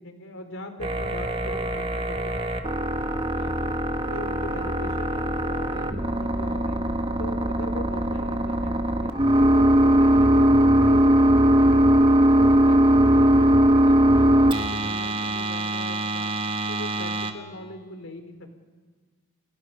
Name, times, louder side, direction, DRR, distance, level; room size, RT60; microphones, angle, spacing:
voice 1, 0.0-2.3 3.3-3.7 4.1-6.8 7.2-9.1 9.5-11.8 12.2-16.3 16.7-18.5, left 1 dB, 65° left, 6 dB, 3.6 m, -40 dB
sound 1, 0.8-17.3, right 1 dB, 25° right, 1.5 m, -21 dB
29.0 x 27.5 x 5.5 m, 1.4 s
head